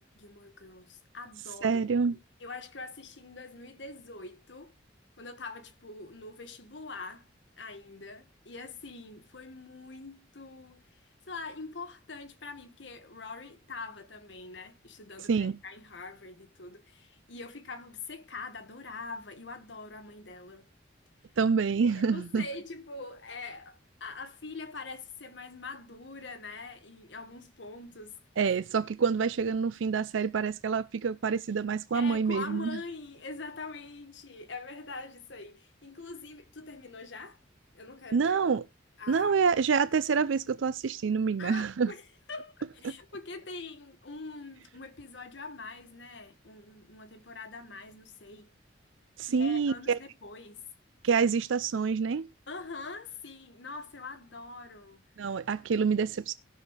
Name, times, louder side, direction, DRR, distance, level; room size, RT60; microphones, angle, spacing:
voice 1, 0.0-1.8 2.4-4.7 5.2-7.3 7.6-20.7 21.8-28.2 31.9-37.4 37.7-38.4 39.0-39.4 41.4-48.5 49.2-50.6 52.5-55.0, left 3 dB, 65° left, 1.4 m, -44 dB
voice 2, 1.6-2.1 15.3-15.6 21.4-22.4 28.4-32.8 38.1-38.6 39.1-41.9 49.2-50.0 51.0-52.3 55.2-56.3, right 5 dB, 85° right, 0.5 m, -27 dB
18.5 x 6.4 x 3.4 m
head